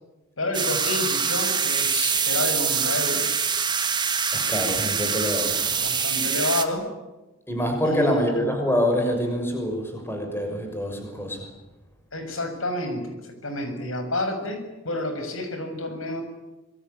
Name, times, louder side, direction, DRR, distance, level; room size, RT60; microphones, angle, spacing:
voice 1, 0.4-3.4 5.6-6.9 7.8-8.3 12.1-16.2, left 2 dB, 80° left, 7 dB, 6.7 m, -29 dB
sound 1, 0.5-6.7, right 6 dB, 20° right, 2.1 m, -24 dB
voice 2, 4.3-5.6 7.5-11.5, equal, 10° left, 4 dB, 6.3 m, -25 dB
26.5 x 22.0 x 9.8 m, 1.1 s
head